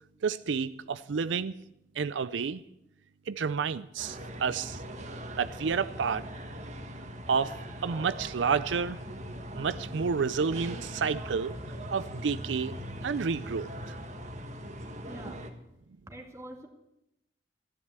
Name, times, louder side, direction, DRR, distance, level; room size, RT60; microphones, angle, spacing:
voice 1, 0.2-1.5 2.0-2.6 3.3-4.8 5.4-6.2 7.3-7.6 7.8-9.0 9.6-11.6 11.9-12.7 13.0-13.7, right 5 dB, 85° right, 15 dB, 0.5 m, -30 dB
sound 1, 4.0-15.5, equal, 40° right, 1.5 m, -41 dB
voice 2, 15.1-15.5 16.1-16.7, right 1 dB, 15° right, 3 dB, 2.1 m, -45 dB
14.5 x 11.0 x 8.1 m, 0.84 s
head